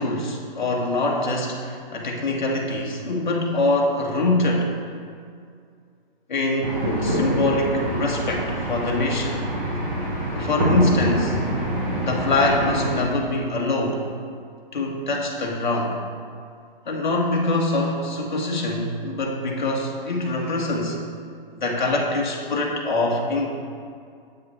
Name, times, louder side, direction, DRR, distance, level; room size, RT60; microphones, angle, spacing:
voice 1, 0.0-4.8 6.3-9.4 10.3-11.4 11.9-14.1 14.7-16.0 16.8-21.0 21.5-23.5, left 2 dB, 55° left, -1 dB, 1.7 m, -24 dB
sound 1, 6.6-13.0, equal, 15° right, 0.8 m, -25 dB
9.0 x 7.3 x 4.6 m, 2.2 s
hypercardioid pair, 175°, 29 cm